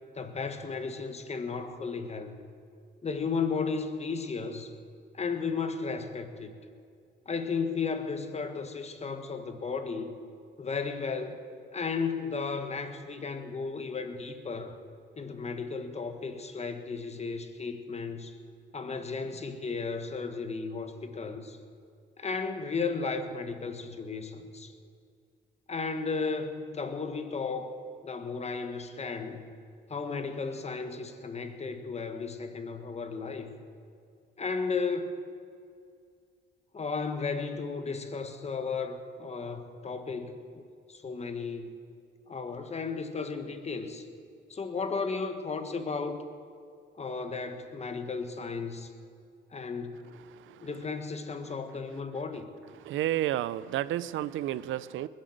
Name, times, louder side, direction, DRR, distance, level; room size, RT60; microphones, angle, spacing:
voice 1, 0.1-2.3 3.0-4.7 5.1-6.5 7.2-10.2 10.6-11.4 11.7-14.8 15.2-18.4 18.7-21.6 22.2-24.7 25.7-27.7 28.0-29.5 29.9-33.5 34.4-35.1 36.7-40.6 40.9-41.7 42.3-44.1 44.5-46.3 47.0-48.9 49.5-50.1 50.6-52.5, left 4 dB, 35° left, 7 dB, 1.5 m, -34 dB
voice 2, 52.9-55.1, right 13 dB, 80° right, 17 dB, 0.5 m, -30 dB
20.5 x 7.6 x 7.8 m, 2.3 s
cardioid pair, 90°, 20 cm